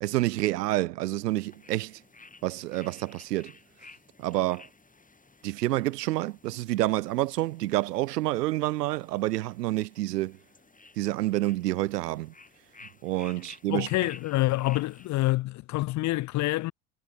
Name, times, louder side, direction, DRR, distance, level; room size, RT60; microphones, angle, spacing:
voice 1, 0.0-2.0 2.4-3.5 4.2-4.7 5.4-10.4 11.0-12.3 13.0-13.9, right 17 dB, 90° right, 0.9 m, -28 dB
sound 1, 1.3-15.3, left 3 dB, 15° left, 6.2 m, -55 dB
voice 2, 13.7-16.7, left 18 dB, 40° left, 0.4 m, -27 dB
hypercardioid pair, 70°, 47 cm